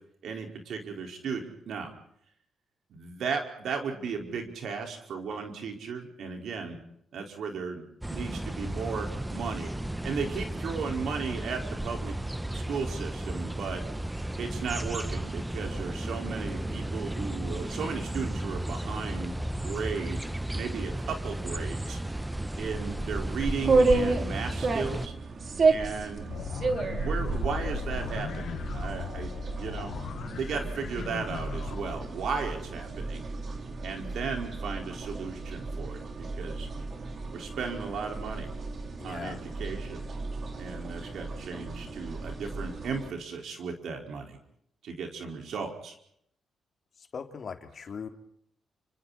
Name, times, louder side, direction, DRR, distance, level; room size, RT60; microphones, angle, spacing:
voice 1, 0.2-1.9 2.9-6.8 7.1-7.8 8.1-9.7 10.0-12.2 12.5-13.8 14.4-20.2 20.5-22.0 22.6-25.1 25.7-26.3 27.0-29.9 30.4-33.2 33.8-36.7 37.3-38.5 39.0-40.1 40.5-44.4 44.8-45.9, right 5 dB, 75° right, 3 dB, 4.9 m, -35 dB
sound 1, 8.0-25.1, right 1 dB, 10° right, 1.2 m, -34 dB
sound 2, 23.6-43.1, right 3 dB, 50° right, 3.3 m, -32 dB
sound 3, 26.3-32.0, left 8 dB, 70° left, 1.4 m, -38 dB
voice 2, 39.0-39.4 47.0-48.1, left 6 dB, 55° left, 5 dB, 2.9 m, -39 dB
29.5 x 25.5 x 4.3 m, 0.71 s
cardioid pair, 75°, 0 cm